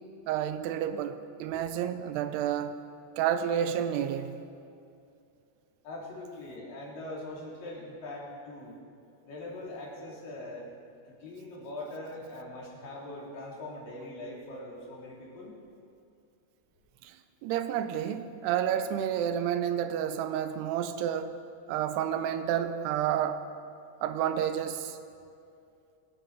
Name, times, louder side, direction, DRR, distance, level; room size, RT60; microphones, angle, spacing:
voice 1, 0.3-2.7 3.2-4.4 17.0-17.1 17.4-21.3 21.7-23.4 24.0-25.0, right 9 dB, 85° right, 10 dB, 2.8 m, -30 dB
voice 2, 5.8-8.8 9.2-10.7 11.1-15.5, left 1 dB, 55° left, -4 dB, 4.7 m, -42 dB
24.5 x 12.5 x 4.8 m, 2.5 s
omnidirectional pair, 4.8 m